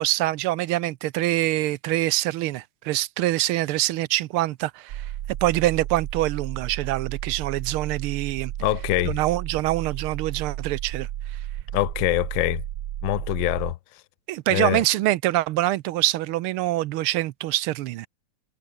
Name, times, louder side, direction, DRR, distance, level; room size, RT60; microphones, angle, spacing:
voice 1, 0.0-5.1 5.4-8.5 9.0-11.4 14.3-18.1, right 16 dB, 85° right, 1.6 m, -25 dB
sound 1, 4.9-13.7, right 13 dB, 65° right, 1.1 m, -33 dB
voice 2, 8.6-9.2 11.7-12.6 13.0-13.8 14.5-14.8, left 17 dB, 75° left, 1.3 m, -24 dB
omnidirectional pair, 2.3 m